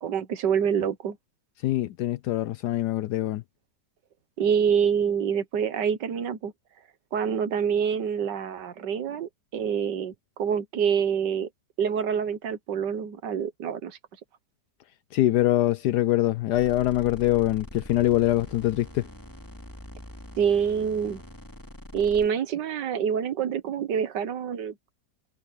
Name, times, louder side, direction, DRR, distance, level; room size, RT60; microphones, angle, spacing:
voice 1, 0.0-1.2 4.4-6.5 7.1-11.5 11.8-14.0 20.4-21.2 21.9-24.8, right 7 dB, 85° right, 1.9 m, -26 dB
voice 2, 1.6-3.4 15.1-19.1, left 14 dB, 75° left, 1.2 m, -24 dB
sound 1, 16.5-22.3, left 1 dB, 10° left, 2.6 m, -43 dB
omnidirectional pair, 1.8 m